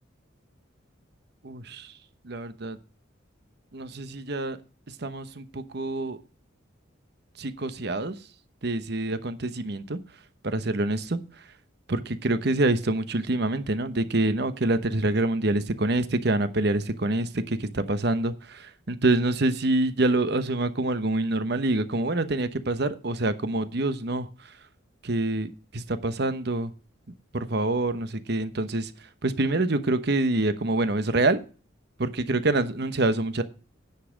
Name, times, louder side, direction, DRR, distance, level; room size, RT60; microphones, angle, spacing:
voice 1, 1.4-1.9 2.2-2.8 3.7-4.6 5.0-6.2 7.4-8.2 8.6-10.0 10.4-11.2 11.9-24.3 25.0-26.7 27.3-28.9 29.2-31.4 32.0-33.4, right 2 dB, 55° right, 1.0 m, -26 dB
10.0 x 5.7 x 7.2 m
head